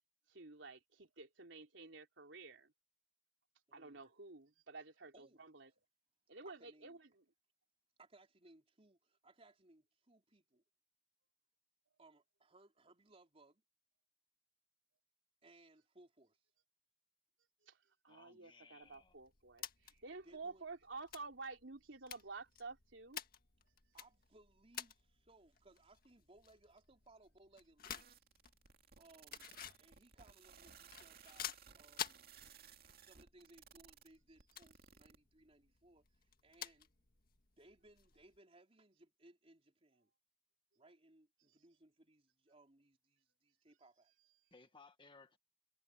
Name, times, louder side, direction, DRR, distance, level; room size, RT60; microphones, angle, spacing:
voice 1, 0.3-2.7 3.7-5.7 6.3-7.1 17.6-17.8 18.0-23.2, right 3 dB, 90° right, 3.4 m, -51 dB
voice 2, 3.7-4.1 5.1-5.4 6.4-7.0 8.0-10.6 12.0-13.6 15.4-16.4 20.2-20.7 23.9-28.1 29.0-32.4 33.0-37.0 37.6-40.1 40.8-44.1, right 2 dB, 35° right, 3.9 m, -66 dB
voice 3, 18.1-19.1 44.5-45.4, left 4 dB, 25° left, 1.6 m, -62 dB
sound 1, 18.8-38.4, left 9 dB, 50° left, 1.8 m, -53 dB
sound 2, 27.8-35.2, right 7 dB, 55° right, 2.2 m, -60 dB
head